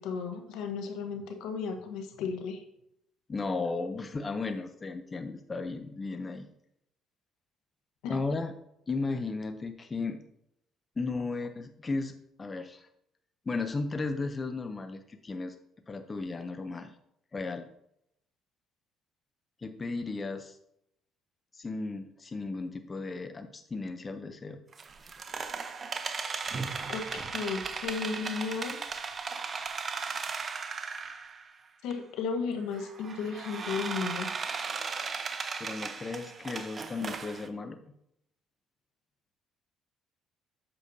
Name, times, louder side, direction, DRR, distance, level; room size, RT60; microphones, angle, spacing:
voice 1, 0.0-2.6 8.0-8.2 26.9-28.8 31.8-34.4, left 5 dB, 80° left, 5 dB, 1.1 m, -34 dB
voice 2, 3.3-6.5 8.1-8.5 8.9-10.2 11.0-12.9 13.5-15.6 15.9-16.9 17.3-17.7 19.6-20.6 21.5-24.6 35.6-37.9, left 3 dB, 30° left, 8 dB, 0.6 m, -35 dB
sound 1, 24.7-31.5 31.9-32.0 32.7-37.5, right 5 dB, 40° right, 0.7 m, -36 dB
8.3 x 6.8 x 2.7 m, 0.76 s
supercardioid pair, 80°, 0 cm